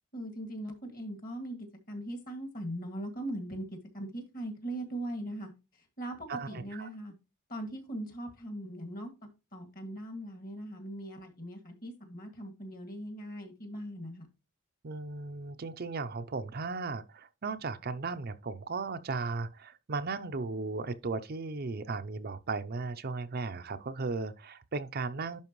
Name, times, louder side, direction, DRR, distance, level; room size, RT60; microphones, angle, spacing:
voice 1, 0.1-3.7 3.9-5.5 6.0-7.1 7.5-9.1 9.5-14.3, right 1 dB, 40° left, 2.1 m, -40 dB
voice 2, 6.3-6.9 14.8-25.4, right 4 dB, 45° right, 0.5 m, -36 dB
11.0 x 4.4 x 3.1 m
head